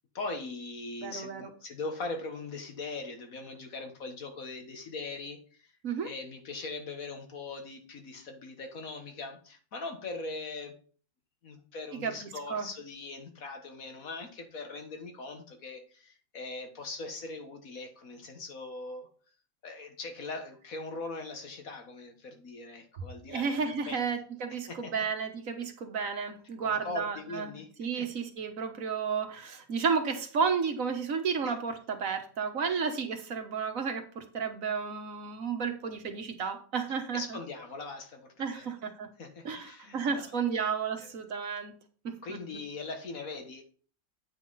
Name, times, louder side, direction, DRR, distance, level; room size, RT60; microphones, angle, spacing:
voice 1, 0.1-5.8 6.0-10.8 11.4-19.1 19.6-23.6 23.9-24.1 24.5-24.9 26.6-27.7 28.0-28.1 31.4-31.5 32.7-32.8 37.1-38.7 39.2-41.1 42.2-43.6, left 3 dB, 75° left, 5 dB, 2.0 m, -41 dB
voice 2, 1.0-1.5 5.8-6.1 12.0-12.7 23.3-37.4 38.4-39.1 39.5-41.7 42.0-42.4, right 6 dB, 70° right, 6 dB, 1.7 m, -32 dB
9.0 x 5.7 x 4.1 m, 0.41 s
omnidirectional pair, 1.5 m